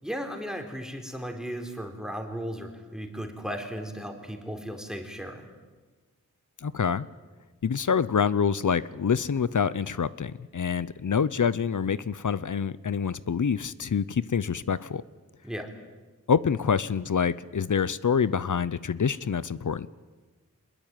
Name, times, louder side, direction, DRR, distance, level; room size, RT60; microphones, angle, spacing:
voice 1, 0.0-5.5 15.4-15.7, equal, ahead, 4 dB, 4.1 m, -36 dB
voice 2, 6.6-7.1 7.6-15.0 16.3-19.9, left 6 dB, 65° left, 17 dB, 0.8 m, -26 dB
24.5 x 21.0 x 9.2 m, 1.3 s
wide cardioid pair, 65°, 33 cm